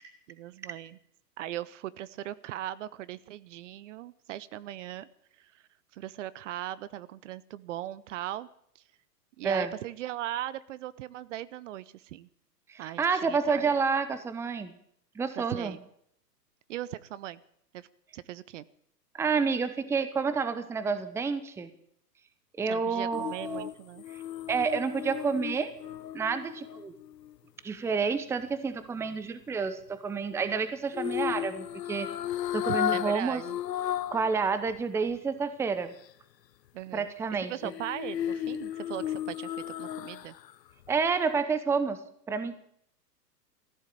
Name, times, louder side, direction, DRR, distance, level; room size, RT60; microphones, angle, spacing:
voice 1, 0.3-1.0 1.4-5.1 5.4-5.6 5.9-8.5 9.4-12.3 12.8-13.7 15.4-15.8 16.7-17.4 17.7-17.9 18.1-18.6 22.7-24.0 32.7-33.6 36.7-37.1 37.4-40.3, right 13 dB, 50° right, 18 dB, 0.8 m, -39 dB
voice 2, 12.7-14.7 15.2-15.8 19.1-21.7 22.6-23.7 24.5-25.7 26.1-26.9 27.6-32.1 32.5-33.4 34.1-35.9 36.9-37.5 40.9-42.0 42.3-42.7, right 5 dB, 5° right, 12 dB, 0.7 m, -29 dB
sound 1, 23.1-27.4 30.9-34.3 34.7-34.8 37.6-40.5 40.9-41.0, left 11 dB, 80° left, 0.7 m, -34 dB
15.5 x 11.5 x 8.4 m, 0.69 s
hypercardioid pair, 115°, 49 cm